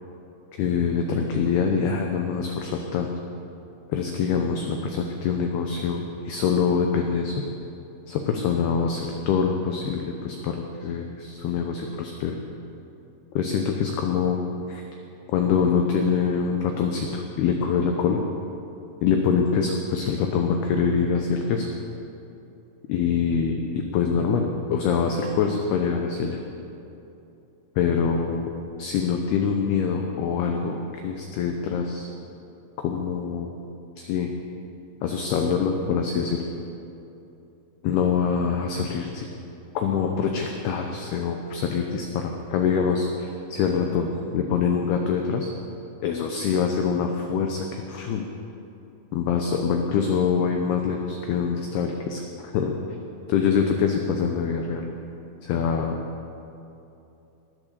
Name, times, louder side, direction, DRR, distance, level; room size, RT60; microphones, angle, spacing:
voice 1, 0.6-3.1 3.9-7.3 8.1-12.4 13.4-14.4 14.7-14.8 15.3-18.2 19.0-21.7 22.9-26.4 27.8-28.5 28.8-32.1 32.8-33.5 34.0-34.3 35.0-36.4 37.8-39.3 39.7-44.1 44.3-45.5 46.0-48.3 49.1-52.7 53.3-54.9 55.4-56.0, left 6 dB, 80° left, 3 dB, 2.4 m, -24 dB
20.0 x 8.8 x 6.8 m, 2.8 s
omnidirectional pair, 5.6 m